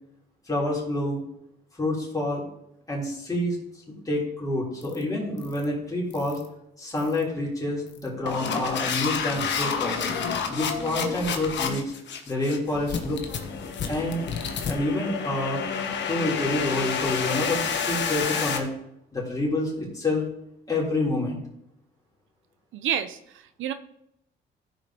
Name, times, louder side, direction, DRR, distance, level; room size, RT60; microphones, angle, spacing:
voice 1, 0.5-1.2 1.8-2.4 2.9-3.6 3.9-6.4 6.8-10.0 10.5-11.9 12.3-13.2 13.9-14.3 14.7-15.7 16.1-18.7 19.1-20.2 20.7-21.4, left 1 dB, 15° left, -4 dB, 3.5 m, -28 dB
sound 1, 4.8-5.0 5.4-5.6 6.1-6.5 7.0-7.2 7.9-18.6, left 6 dB, 65° left, 1.2 m, -29 dB
voice 2, 22.7-23.7, right 9 dB, 80° right, 10 dB, 0.7 m, -29 dB
15.0 x 5.1 x 2.9 m, 0.77 s
cardioid pair, 90°, 20 cm